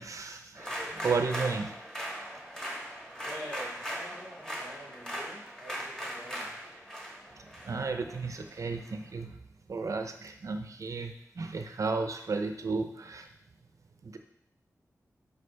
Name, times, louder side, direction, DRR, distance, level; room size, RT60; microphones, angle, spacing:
voice 1, 0.0-1.7 7.6-9.4 9.7-13.3 14.0-14.2, right 4 dB, 60° right, 6 dB, 0.5 m, -33 dB
sound 1, 0.6-8.9, equal, 10° left, 1.3 m, -39 dB
voice 2, 3.2-6.5, equal, 45° left, -6 dB, 2.7 m, -46 dB
6.4 x 4.9 x 3.3 m, 0.73 s
wide cardioid pair, 100°, 6 cm